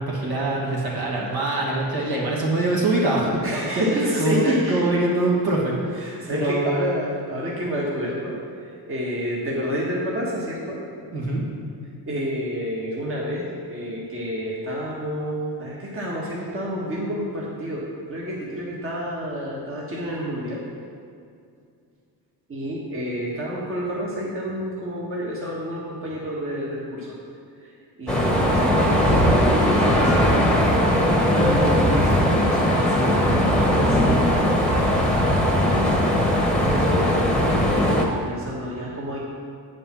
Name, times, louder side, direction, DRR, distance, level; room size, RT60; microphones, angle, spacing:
voice 1, 0.0-3.3 3.8-3.9 4.2-5.7 6.3-6.9 11.1-11.4, right 2 dB, 60° right, -4 dB, 2.2 m, -23 dB
voice 2, 3.4-4.9 5.9-8.4 8.6-10.8 12.1-20.6 22.5-27.2 27.6-27.7 28.0-30.3 31.3-34.5 35.5-39.2, equal, 30° right, -5 dB, 1.6 m, -29 dB
sound 1, 28.1-38.0, equal, ahead, 1.2 m, -19 dB
8.7 x 5.3 x 5.9 m, 2.4 s
cardioid pair, 110°, 41 cm